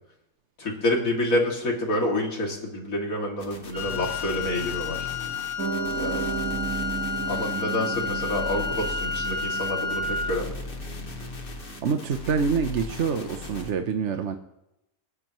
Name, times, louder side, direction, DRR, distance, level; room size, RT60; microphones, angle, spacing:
voice 1, 0.6-5.1 6.0-6.3 7.3-10.5, left 1 dB, 80° left, 0 dB, 3.0 m, -28 dB
sound 1, 3.4-13.7, left 2 dB, 40° left, 1.5 m, -38 dB
Wind instrument woodwind instrument, 3.7-10.4, left 4 dB, 30° right, 2.1 m, -31 dB
Piano, 5.6-12.1, right 7 dB, 80° right, 1.9 m, -35 dB
voice 2, 11.8-14.4, right 5 dB, 60° right, 7 dB, 1.1 m, -26 dB
28.5 x 9.9 x 3.1 m, 0.87 s
omnidirectional pair, 1.4 m